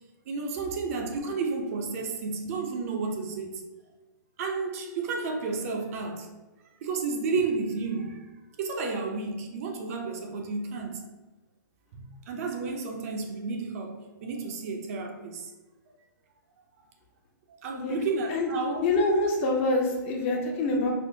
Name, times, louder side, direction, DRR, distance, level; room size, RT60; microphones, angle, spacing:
voice 1, 0.3-3.6 4.4-6.3 6.8-8.3 8.6-11.1 11.9-15.5 17.6-18.8, right 4 dB, 45° right, 0.5 m, -32 dB
voice 2, 18.8-20.9, left 2 dB, 40° left, 0.6 m, -25 dB
4.2 x 2.0 x 2.6 m
hypercardioid pair, 145°, 11 cm